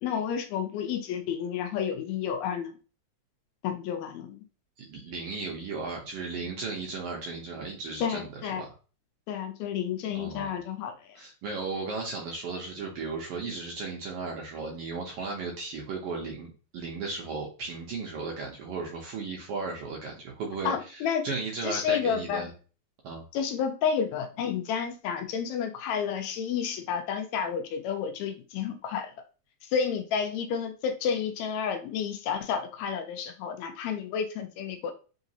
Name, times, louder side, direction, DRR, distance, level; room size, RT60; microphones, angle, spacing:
voice 1, 0.0-2.7 3.6-4.4 8.0-8.6 9.3-11.2 20.7-21.3 21.6-22.5 23.3-29.1 29.6-34.9, left 7 dB, 80° left, 7 dB, 1.8 m, -30 dB
voice 2, 4.8-8.7 10.1-10.5 11.2-22.5 23.0-23.2, right 4 dB, 70° right, 0 dB, 1.4 m, -35 dB
3.9 x 3.8 x 2.7 m, 0.36 s
omnidirectional pair, 3.3 m